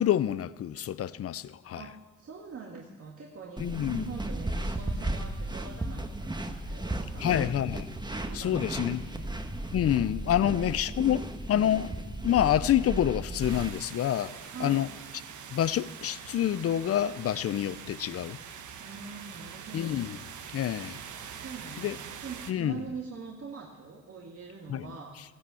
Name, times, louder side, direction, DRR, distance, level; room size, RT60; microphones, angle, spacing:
voice 1, 0.0-1.9 3.6-4.1 7.2-8.0 8.3-9.1 9.7-11.9 12.2-14.9 15.5-18.4 19.7-20.2 20.5-21.0 21.8-22.0 22.5-22.8 24.7-24.9, left 11 dB, 50° left, 0.6 m, -27 dB
voice 2, 1.8-7.5 8.1-9.3 10.4-10.6 14.5-14.9 18.8-20.0 21.4-25.2, right 5 dB, 50° right, 1.9 m, -44 dB
sound 1, 3.6-13.7, right 1 dB, 15° right, 1.3 m, -35 dB
sound 2, 13.4-22.5, right 7 dB, 75° right, 1.4 m, -44 dB
16.0 x 11.5 x 7.1 m
cardioid pair, 90°, 30 cm